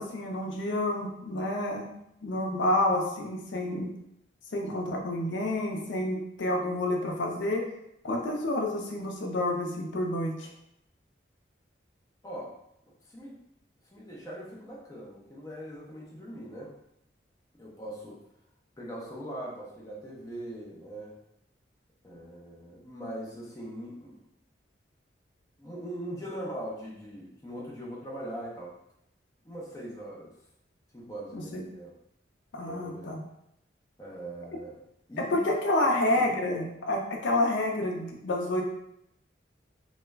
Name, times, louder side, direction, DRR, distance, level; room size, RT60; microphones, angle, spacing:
voice 1, 0.0-1.9 2.2-3.9 4.5-7.6 8.0-10.5 31.3-31.6 32.5-33.2 35.2-38.6, left 1 dB, 80° left, 1 dB, 0.4 m, -29 dB
voice 2, 12.8-13.4 13.9-16.7 17.6-18.2 18.8-21.2 22.0-24.1 25.6-28.7 29.4-30.3 30.9-31.9 32.7-33.1 34.0-34.8 35.1-35.4 35.8-36.4, right 1 dB, 20° left, -5 dB, 0.5 m, -41 dB
2.2 x 2.0 x 3.3 m, 0.79 s
head